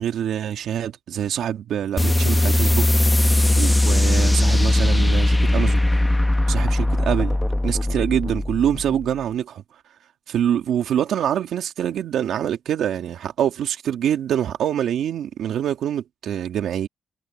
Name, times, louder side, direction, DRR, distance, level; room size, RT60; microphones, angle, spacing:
voice 1, 0.0-2.9 3.6-6.0 6.5-7.4 7.6-9.6 10.3-16.9, right 10 dB, 65° right, 2.2 m, -25 dB
sound 1, 2.0-9.1, left 1 dB, 10° left, 0.8 m, -19 dB
cardioid pair, 130°, 0 cm